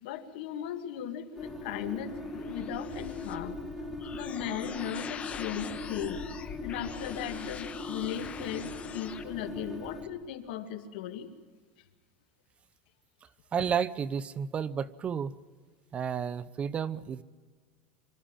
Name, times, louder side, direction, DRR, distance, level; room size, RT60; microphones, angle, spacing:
voice 1, 0.0-3.6 4.1-6.2 6.6-11.3, left 10 dB, 70° left, 8 dB, 2.1 m, -37 dB
sound 1, 1.4-10.1, left 2 dB, ahead, 2.9 m, -40 dB
sound 2, 1.6-9.2, left 7 dB, 25° left, 1.3 m, -44 dB
voice 2, 13.5-15.4 15.9-17.2, right 7 dB, 25° right, 17 dB, 0.6 m, -31 dB
26.0 x 13.0 x 8.8 m, 1.5 s
supercardioid pair, 145°, 5 cm